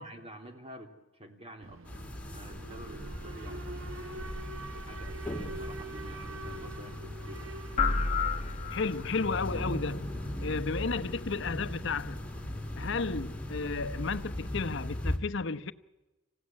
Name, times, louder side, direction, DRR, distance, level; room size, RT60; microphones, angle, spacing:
voice 1, 0.0-2.1 2.3-4.1 4.9-7.5 10.3-10.6, right 1 dB, 30° right, 2.9 m, -49 dB
Alarm, 1.6-13.6, right 2 dB, 80° right, 1.2 m, -46 dB
sound 1, 1.9-15.2, left 1 dB, 5° left, 2.8 m, -39 dB
sound 2, 7.8-9.3, left 4 dB, 35° left, 1.3 m, -30 dB
voice 2, 8.7-10.1 10.4-12.2 12.8-15.7, left 4 dB, 65° left, 0.9 m, -33 dB
26.0 x 16.0 x 9.7 m
head